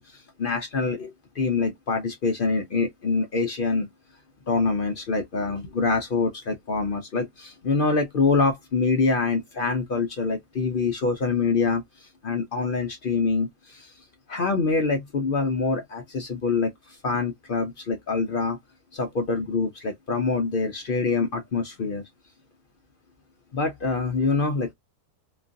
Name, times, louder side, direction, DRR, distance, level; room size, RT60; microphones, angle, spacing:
voice 1, 0.0-3.9 4.5-13.9 14.3-18.6 18.9-22.0 23.5-24.7, left 4 dB, 60° left, 0.5 m, -25 dB
3.0 x 2.3 x 2.5 m
omnidirectional pair, 1.7 m